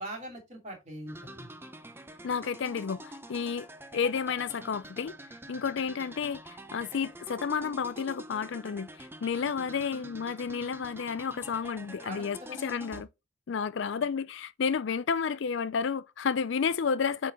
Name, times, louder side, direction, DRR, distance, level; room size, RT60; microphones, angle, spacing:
voice 1, 0.0-1.5 12.0-12.7, right 1 dB, 35° right, 2.6 m, -42 dB
sound 1, 1.1-13.0, right 1 dB, 10° right, 0.6 m, -47 dB
voice 2, 2.2-3.7 3.9-5.2 5.5-13.1 13.5-17.3, left 6 dB, 60° left, 0.4 m, -31 dB
8.4 x 3.8 x 3.8 m
head